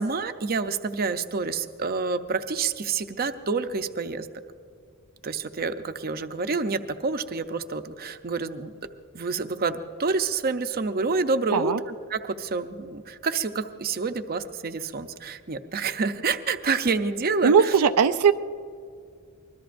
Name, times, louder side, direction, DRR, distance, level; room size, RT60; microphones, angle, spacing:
voice 1, 0.0-4.3 5.2-8.7 9.1-11.7 12.1-17.8, right 4 dB, 45° right, 8 dB, 0.6 m, -28 dB
voice 2, 17.4-18.3, right 6 dB, 85° right, 10 dB, 0.5 m, -19 dB
25.0 x 21.0 x 2.6 m, 2.2 s
head